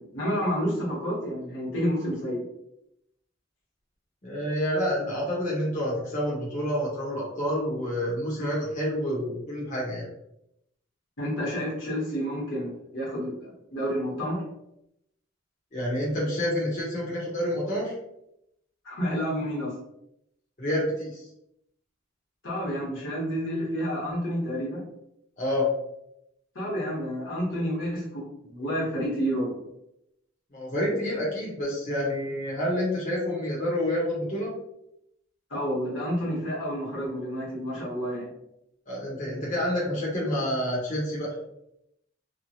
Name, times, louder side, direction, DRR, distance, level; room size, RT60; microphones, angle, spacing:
voice 1, 0.0-2.5 11.2-14.4 18.8-19.8 22.4-24.8 26.5-28.2 28.5-29.6 35.5-38.3, equal, 75° left, -5 dB, 1.2 m, -29 dB
voice 2, 4.2-10.1 15.7-17.9 20.6-21.2 25.4-25.7 30.5-34.5 38.9-41.3, equal, 40° left, -6 dB, 0.8 m, -28 dB
3.0 x 2.2 x 2.7 m, 0.81 s
head